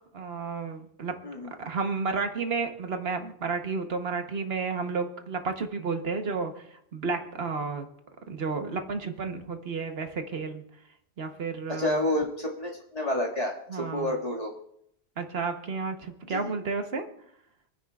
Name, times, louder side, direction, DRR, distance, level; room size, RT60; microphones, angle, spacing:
voice 1, 0.1-1.1 1.6-7.8 8.3-10.6 11.2-12.0 13.7-14.1 15.2-17.1, right 4 dB, 70° right, 6 dB, 1.3 m, -32 dB
voice 2, 11.7-14.5 16.3-16.6, left 1 dB, 35° left, -2 dB, 2.1 m, -29 dB
27.0 x 9.9 x 2.4 m, 0.74 s
omnidirectional pair, 1.1 m